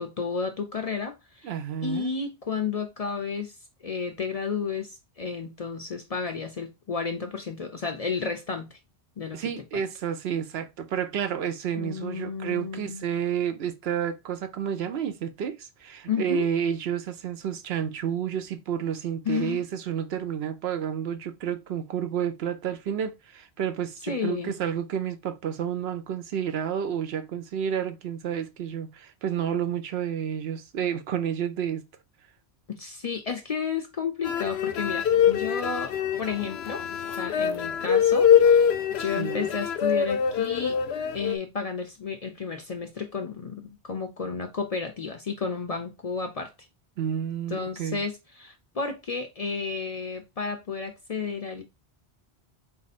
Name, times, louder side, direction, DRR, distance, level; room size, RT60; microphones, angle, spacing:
voice 1, 0.0-1.5 1.8-3.5 3.8-8.8 9.2-9.8 11.8-13.0 16.1-16.5 19.3-19.6 24.1-24.5 32.7-36.8 37.2-38.7 39.0-40.8 41.1-46.5 47.5-51.6, left 5 dB, 45° left, 0.5 m, -32 dB
voice 2, 1.4-2.1 9.3-31.9 39.2-39.5 47.0-48.0, right 8 dB, 75° right, 0.9 m, -30 dB
sound 1, 34.2-41.4, left 8 dB, 80° left, 0.8 m, -23 dB
4.1 x 2.6 x 4.1 m
omnidirectional pair, 1.1 m